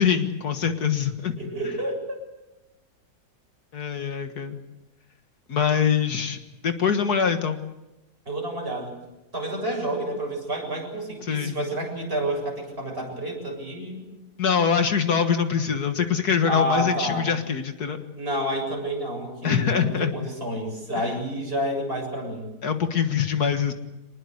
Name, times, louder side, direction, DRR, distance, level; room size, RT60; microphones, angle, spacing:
voice 1, 0.0-1.3 3.7-4.6 5.5-6.4 6.6-7.6 11.2-11.6 14.4-18.0 19.4-20.1 21.0-21.1 22.6-23.7, left 7 dB, 75° left, 7 dB, 2.1 m, -23 dB
voice 2, 1.4-2.2 8.3-9.0 9.3-14.2 16.5-17.2 18.1-22.5, right 1 dB, 35° right, 1 dB, 7.6 m, -29 dB
25.5 x 20.0 x 8.2 m, 1.0 s
omnidirectional pair, 1.7 m